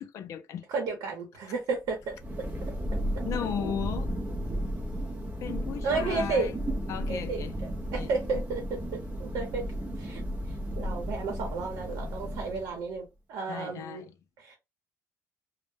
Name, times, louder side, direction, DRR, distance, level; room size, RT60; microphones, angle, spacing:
voice 1, 0.0-0.7 3.2-4.1 5.4-6.5 6.9-7.5 8.0-8.1 13.5-14.0, left 8 dB, 55° left, 0.4 m, -35 dB
voice 2, 0.7-2.1 5.8-6.5 7.1-7.4 7.9-8.6 8.9-9.6 10.0-10.2 10.8-14.0 14.4-14.6, right 4 dB, 75° right, 0.8 m, -32 dB
Thunder, 1.9-12.9, equal, 25° right, 0.5 m, -34 dB
2.1 x 2.0 x 3.2 m
cardioid pair, 155°, 6 cm